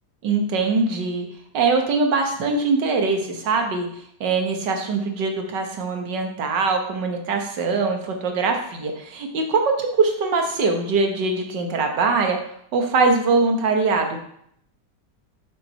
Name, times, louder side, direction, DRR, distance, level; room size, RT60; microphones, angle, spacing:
voice 1, 0.2-1.3 1.5-3.9 4.2-12.4 12.7-14.2, right 4 dB, 80° right, 4 dB, 1.9 m, -22 dB
7.1 x 6.0 x 5.5 m, 0.70 s
omnidirectional pair, 1.9 m